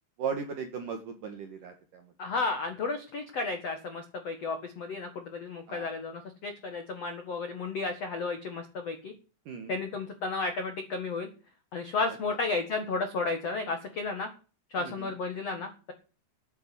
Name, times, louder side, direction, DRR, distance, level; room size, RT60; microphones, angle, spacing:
voice 1, 0.2-2.0 5.7-5.9 9.5-9.7 14.8-15.1, right 6 dB, 65° right, 6 dB, 2.1 m, -37 dB
voice 2, 2.2-9.1 9.7-11.3 11.7-14.3 14.7-15.9, left 3 dB, 70° left, 6 dB, 1.5 m, -33 dB
10.5 x 9.6 x 8.3 m, 0.36 s
omnidirectional pair, 5.9 m